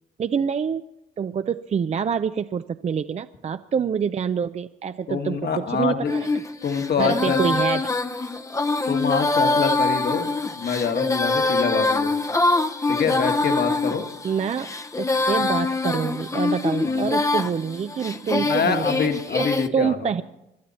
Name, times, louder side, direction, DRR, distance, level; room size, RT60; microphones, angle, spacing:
voice 1, 0.2-0.8 1.2-6.3 7.0-7.8 14.2-14.7 15.0-19.1 19.4-19.5 19.7-20.2, right 7 dB, 35° right, 11 dB, 0.4 m, -26 dB
voice 2, 5.1-6.1 6.6-7.4 8.9-12.1 12.9-14.0 16.8-17.0 18.3-20.0, left 6 dB, 55° left, 6 dB, 1.6 m, -25 dB
Female singing, 6.1-19.7, left 3 dB, 15° left, 0.7 m, -24 dB
22.0 x 12.0 x 4.2 m, 0.88 s
cardioid pair, 90°, 20 cm